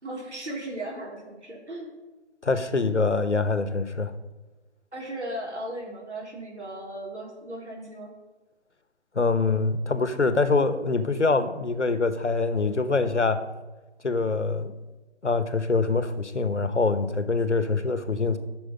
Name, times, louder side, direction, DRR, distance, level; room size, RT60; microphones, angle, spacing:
voice 1, 0.0-1.9 4.9-8.1, right 1 dB, 75° right, -2 dB, 4.0 m, -36 dB
voice 2, 2.4-4.1 9.1-13.4 14.0-14.7 15.2-18.4, left 3 dB, 90° left, 11 dB, 1.2 m, -24 dB
12.0 x 6.6 x 5.4 m, 1.2 s
figure-of-eight pair, 155°, 34 cm